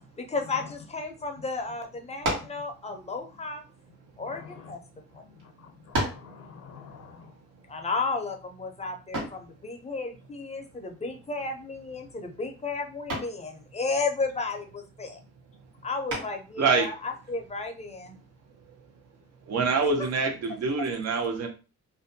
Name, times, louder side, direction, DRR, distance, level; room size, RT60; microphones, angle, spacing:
voice 1, 0.2-3.6 4.2-4.8 5.1-5.3 7.7-15.2 15.8-18.2, left 3 dB, 20° left, 4 dB, 0.5 m, -33 dB
sound 1, 2.2-2.6 3.6-4.7 5.4-5.5 5.9-6.3 9.1-9.5 11.4-11.8 12.1-12.5 13.1-13.4 16.1-16.5, right 1 dB, 80° right, 1.3 m, -32 dB
voice 2, 4.2-4.7 5.4-7.3, left 7 dB, 70° left, 2 dB, 0.6 m, -47 dB
voice 3, 16.6-16.9 19.5-21.5, right 4 dB, 60° right, 4 dB, 0.7 m, -25 dB
2.5 x 2.2 x 2.6 m, 0.33 s
cardioid pair, 90°, 30 cm